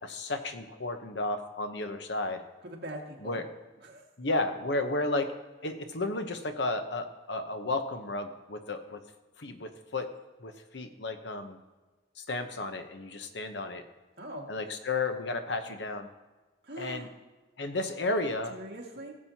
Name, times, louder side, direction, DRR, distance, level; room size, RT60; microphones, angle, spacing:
voice 1, 0.0-2.4 3.2-3.5 4.2-5.3 5.6-9.0 9.4-10.1 10.4-11.6 12.2-13.8 14.5-16.1 16.8-17.1 17.6-18.5, left 2 dB, 90° left, 7 dB, 1.0 m, -33 dB
voice 2, 2.6-3.4 3.8-4.0 14.2-14.5 16.6-17.1 18.5-19.1, right 1 dB, 65° right, -1 dB, 2.0 m, -42 dB
17.0 x 7.5 x 2.9 m, 1.2 s
head